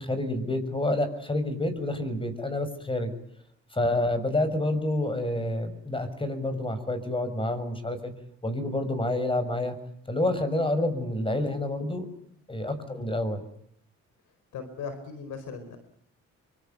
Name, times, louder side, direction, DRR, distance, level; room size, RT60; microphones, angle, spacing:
voice 1, 0.0-3.1 3.7-8.1 8.4-9.7 10.1-12.1 12.5-13.4, left 1 dB, 15° left, 12 dB, 6.5 m, -28 dB
voice 2, 14.5-15.8, left 5 dB, 80° left, 9 dB, 4.7 m, -39 dB
26.0 x 24.0 x 9.3 m, 0.69 s
cardioid pair, 90°, 30 cm